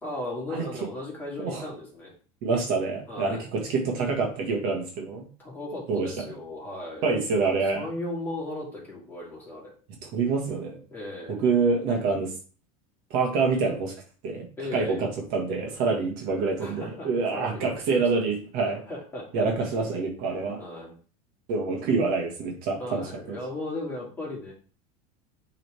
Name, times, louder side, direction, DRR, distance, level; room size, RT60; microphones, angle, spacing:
voice 1, 0.0-2.1 3.1-3.4 5.4-7.1 7.7-9.7 10.9-11.5 14.6-15.1 16.6-18.3 18.9-19.3 20.6-20.9 22.8-24.5, left 2 dB, 10° left, -5 dB, 2.6 m, -36 dB
voice 2, 2.4-5.3 5.9-6.2 7.0-7.9 10.1-10.8 11.4-12.3 13.1-13.9 14.2-14.5 14.7-18.8 19.3-20.6 21.5-23.4, right 4 dB, 55° right, 1 dB, 1.7 m, -26 dB
7.8 x 3.9 x 3.4 m, 0.40 s
supercardioid pair, 145°, 18 cm